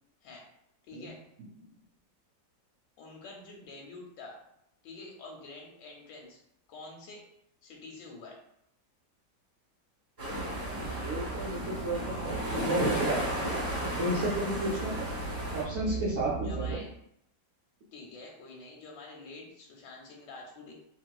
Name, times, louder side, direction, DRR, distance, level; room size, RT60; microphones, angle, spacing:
voice 1, 0.9-1.2 3.0-4.4 4.8-6.4 6.7-7.2 7.6-8.4 16.4-16.9 17.9-20.7, left 3 dB, 90° left, -1 dB, 1.3 m, -47 dB
sound 1, 10.2-15.6, equal, 25° right, 0.9 m, -34 dB
sound 2, 10.3-16.8, right 2 dB, 25° left, 0.9 m, -38 dB
voice 2, 10.6-13.2 14.0-14.9 15.5-16.8, right 2 dB, 65° right, -6 dB, 0.7 m, -32 dB
3.7 x 2.4 x 2.3 m, 0.75 s
omnidirectional pair, 1.9 m